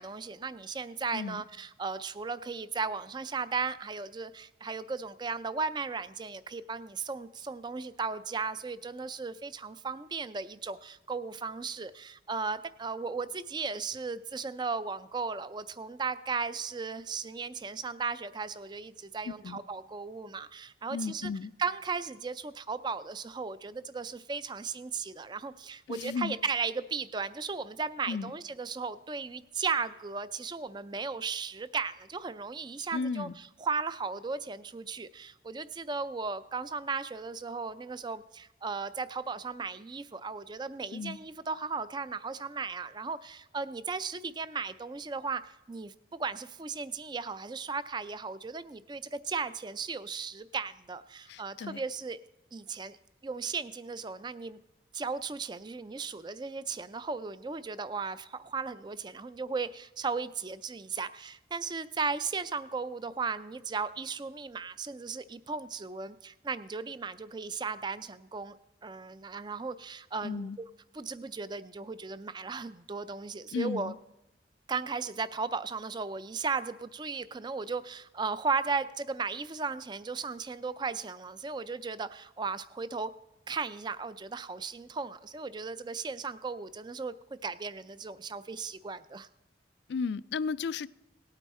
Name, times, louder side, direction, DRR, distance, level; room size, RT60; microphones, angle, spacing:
voice 1, 0.0-21.3 21.6-33.3 33.6-45.9 46.2-52.2 52.5-53.0 53.2-54.6 54.9-68.6 68.8-70.5 70.9-73.9 74.7-83.1 83.5-89.3, right 4 dB, 25° right, 0.4 m, -36 dB
voice 2, 1.1-1.4 19.2-19.6 20.9-21.5 25.9-26.4 28.1-28.3 32.9-33.3 40.9-41.2 51.3-51.8 70.2-70.6 73.5-73.9 89.9-90.9, left 5 dB, 65° left, 0.3 m, -34 dB
18.0 x 9.0 x 4.2 m
head